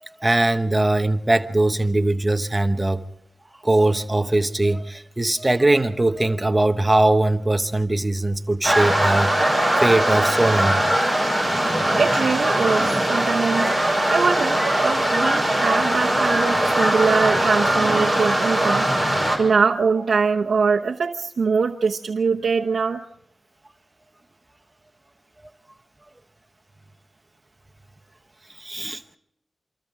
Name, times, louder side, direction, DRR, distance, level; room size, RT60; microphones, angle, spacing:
voice 1, 0.0-3.0 3.6-10.9 28.6-29.0, right 2 dB, 15° right, 1.0 m, -21 dB
sound 1, 8.6-19.4, right 1 dB, 10° left, 5.3 m, -20 dB
voice 2, 12.0-13.8 14.1-23.0, right 5 dB, 65° right, 1.0 m, -23 dB
27.5 x 26.0 x 3.7 m
wide cardioid pair, 165°, 0 cm